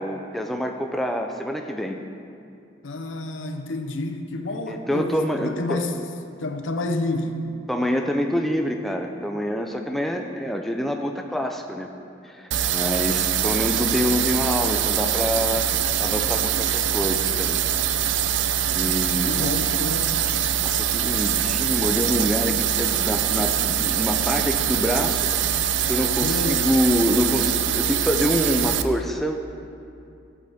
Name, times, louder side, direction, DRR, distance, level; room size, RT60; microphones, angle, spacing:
voice 1, 0.0-2.0 4.7-5.9 7.7-11.9 12.2-17.6 18.3-19.5 20.6-29.3, equal, ahead, 3 dB, 0.4 m, -26 dB
voice 2, 2.8-5.9 6.4-7.5 19.3-20.1 26.2-26.6, left 2 dB, 80° left, 6 dB, 0.7 m, -29 dB
sound 1, 12.5-28.8, right 9 dB, 65° right, 0.4 m, -23 dB
14.5 x 7.6 x 3.5 m, 2.5 s
head